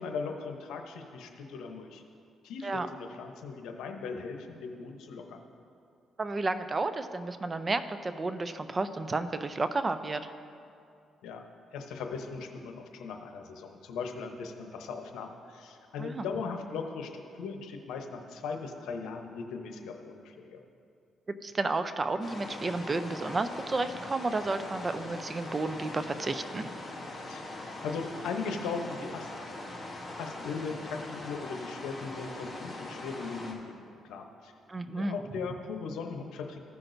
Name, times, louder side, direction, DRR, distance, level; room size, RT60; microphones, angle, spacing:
voice 1, 0.0-2.0 2.4-5.4 11.2-11.4 11.7-20.6 27.3-27.4 27.8-29.3 30.2-34.5 34.9-36.6, left 5 dB, 85° left, 4 dB, 0.8 m, -38 dB
voice 2, 6.2-10.3 16.0-16.2 21.4-26.7 34.7-35.2, right 3 dB, 30° right, 10 dB, 0.5 m, -32 dB
sound 1, 22.2-33.5, left 2 dB, 15° left, 1.8 m, -42 dB
15.5 x 6.0 x 2.6 m, 2.5 s
cardioid pair, 90°, 0 cm